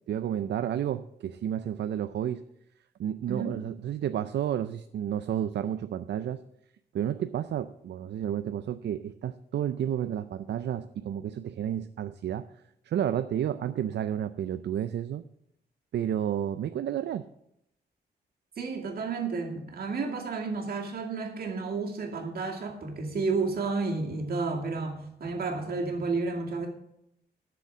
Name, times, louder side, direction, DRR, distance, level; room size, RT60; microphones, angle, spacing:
voice 1, 0.1-2.4 3.0-6.4 6.9-12.5 12.8-15.2 15.9-17.3, right 10 dB, 80° right, 11 dB, 0.5 m, -31 dB
voice 2, 18.6-26.7, right 4 dB, 60° right, 1 dB, 2.4 m, -31 dB
11.5 x 6.9 x 7.3 m, 0.78 s
wide cardioid pair, 170°, 18 cm